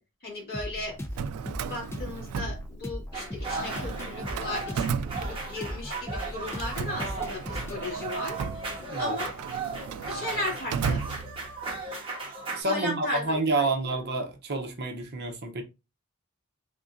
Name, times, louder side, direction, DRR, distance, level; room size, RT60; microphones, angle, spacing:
voice 1, 0.2-1.0 1.7-8.7 9.0-9.3 10.1-11.0 12.5-14.0, left 1 dB, 45° left, 2.2 m, -36 dB
sound 1, 0.5-10.2, equal, 10° left, 0.5 m, -39 dB
Drawer open or close, 1.0-3.2 3.5-5.9 6.5-11.7, right 6 dB, 85° right, 0.3 m, -35 dB
sound 2, 3.1-12.6, right 3 dB, 25° right, 1.3 m, -36 dB
voice 2, 12.5-15.6, right 2 dB, 50° right, 0.7 m, -29 dB
3.7 x 3.6 x 2.5 m
head